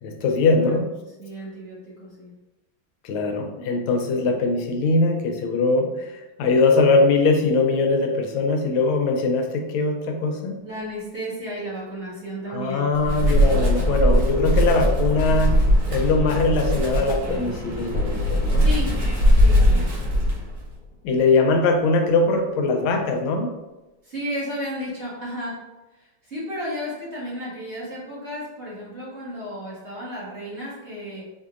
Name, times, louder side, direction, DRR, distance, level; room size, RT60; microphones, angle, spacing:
voice 1, 0.0-0.9 3.0-10.6 12.5-15.6 15.9-18.7 19.6-19.9 21.0-23.5, left 3 dB, 85° left, 3 dB, 1.4 m, -21 dB
voice 2, 1.2-2.3 10.6-13.5 18.6-18.9 19.3-19.9 24.0-25.6 25.9-31.3, equal, 40° right, -8 dB, 1.3 m, -33 dB
Wind, 12.9-20.7, equal, 65° right, 1.4 m, -20 dB
sound 1, 13.5-21.5, left 1 dB, 60° left, 1.3 m, -31 dB
4.5 x 2.7 x 2.4 m, 1.1 s
omnidirectional pair, 2.2 m